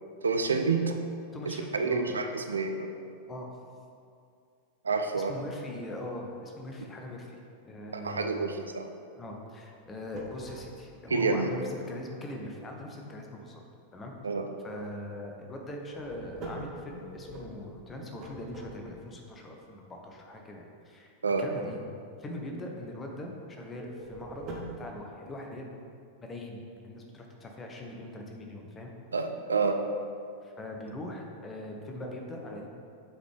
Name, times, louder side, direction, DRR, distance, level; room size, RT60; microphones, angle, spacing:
voice 1, 0.2-0.9 1.5-2.9 4.8-5.3 7.9-8.9 11.1-11.5 14.2-14.4 21.2-21.5 29.1-29.8, right 4 dB, 75° right, 5 dB, 0.4 m, -28 dB
voice 2, 1.3-2.1 3.3-3.6 5.2-7.4 7.7-8.5 9.2-13.6 13.9-14.1 14.6-21.1 21.4-21.8 22.2-25.8 26.2-28.9 30.4-32.7, left 1 dB, 20° left, 1 dB, 0.9 m, -41 dB
sound 1, 9.8-11.1 15.6-19.2 23.7-24.9, right 1 dB, 35° right, 0.9 m, -43 dB
7.8 x 4.0 x 3.5 m, 2.4 s
figure-of-eight pair, 90°, 0 cm